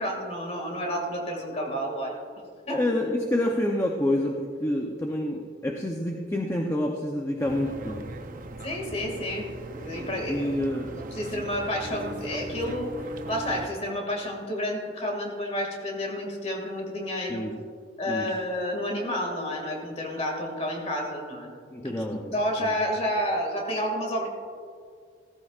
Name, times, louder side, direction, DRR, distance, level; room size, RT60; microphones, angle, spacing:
voice 1, 0.0-2.2 2.7-2.8 8.6-10.5 10.9-17.5 18.0-21.5 22.3-24.3, equal, 35° left, 1 dB, 2.2 m, -30 dB
voice 2, 2.7-8.1 10.3-11.0 17.3-17.5 18.1-18.3 21.7-22.7, left 1 dB, 15° left, 0 dB, 0.7 m, -28 dB
sound 1, 7.4-13.7, right 1 dB, 45° right, 0.6 m, -39 dB
16.0 x 14.0 x 2.5 m, 2.2 s
head